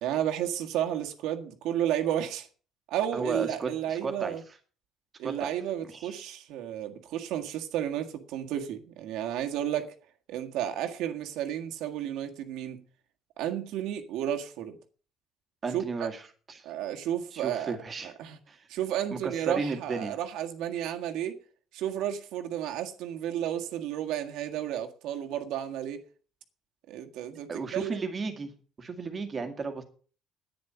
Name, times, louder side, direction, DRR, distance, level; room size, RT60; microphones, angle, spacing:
voice 1, 0.0-2.5 2.9-4.4 5.2-9.9 10.3-12.8 13.4-14.8 15.7-16.1 16.6-17.8 18.0-18.4 18.7-21.4 21.7-26.0 26.9-28.0, right 11 dB, 80° right, 1.7 m, -32 dB
voice 2, 3.1-4.4 5.2-5.5 5.8-6.3 15.6-16.2 16.5-16.7 17.3-18.1 18.5-18.6 19.1-20.2 27.5-28.5 28.8-29.8, right 4 dB, 25° right, 1.9 m, -34 dB
10.5 x 9.6 x 7.0 m
cardioid pair, 160°, 0 cm